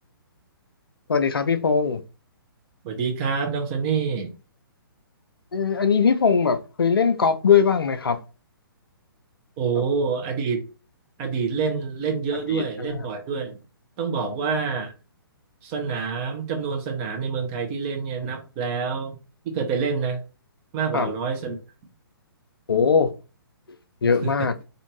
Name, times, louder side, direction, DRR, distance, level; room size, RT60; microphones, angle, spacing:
voice 1, 1.1-2.0 5.5-8.2 9.8-9.9 12.5-13.1 14.2-14.4 20.9-21.1 22.7-23.1 24.0-24.5, left 6 dB, 70° left, 0.4 m, -21 dB
voice 2, 2.8-4.3 9.6-10.6 11.2-13.6 14.0-14.9 15.6-19.2 19.4-20.2 20.7-21.6 24.2-24.3, right 5 dB, 25° right, 0.7 m, -27 dB
2.5 x 2.4 x 3.0 m
figure-of-eight pair, 125°, 12 cm